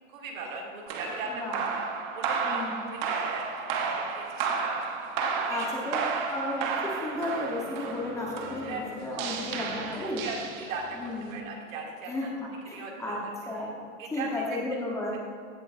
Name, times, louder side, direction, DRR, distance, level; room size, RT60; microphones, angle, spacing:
voice 1, 0.1-1.8 2.1-2.6 2.9-4.9 5.3-6.2 8.6-8.8 9.2-12.3 12.7-13.3 13.6-13.7 14.0-14.8, right 3 dB, 80° right, -1 dB, 2.4 m, -39 dB
sound 1, 0.9-11.0, right 5 dB, 35° right, 0.9 m, -32 dB
voice 2, 2.4-2.9 5.5-6.0 6.3-10.2 10.9-11.4 12.1-12.3 12.7-13.9 14.1-15.2, left 1 dB, 10° left, -3 dB, 1.0 m, -33 dB
sound 2, 6.9-11.8, left 2 dB, 25° left, 2.1 m, -50 dB
16.0 x 7.6 x 2.5 m, 2.2 s
supercardioid pair, 170°, 39 cm